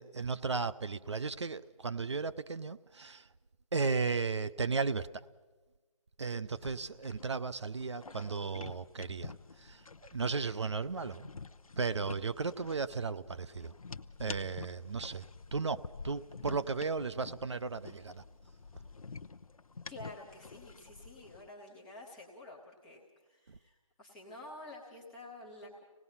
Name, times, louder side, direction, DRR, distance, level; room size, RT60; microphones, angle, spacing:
voice 1, 0.0-3.2 3.7-5.1 6.2-9.3 9.6-9.8 10.1-11.3 11.8-13.7 14.2-15.2 15.5-18.2, right 4 dB, 50° right, 12 dB, 0.6 m, -35 dB
sound 1, 6.5-21.5, left 4 dB, 70° left, 0.8 m, -49 dB
voice 2, 19.9-25.8, left 2 dB, 5° left, -4 dB, 0.6 m, -50 dB
26.0 x 18.5 x 5.6 m, 1.3 s
figure-of-eight pair, 165°, 18 cm